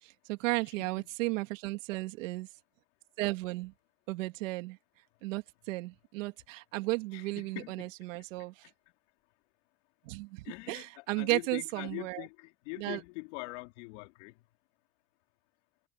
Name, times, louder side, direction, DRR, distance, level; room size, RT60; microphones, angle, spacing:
voice 1, 0.0-2.5 3.2-3.7 4.1-4.8 5.2-8.5 10.0-12.2 12.8-13.0, right 22 dB, 80° right, 2.6 m, -34 dB
voice 2, 0.6-1.1 7.1-7.9 10.4-14.3, left 26 dB, 65° left, 3.7 m, -43 dB
cardioid pair, 175°, 38 cm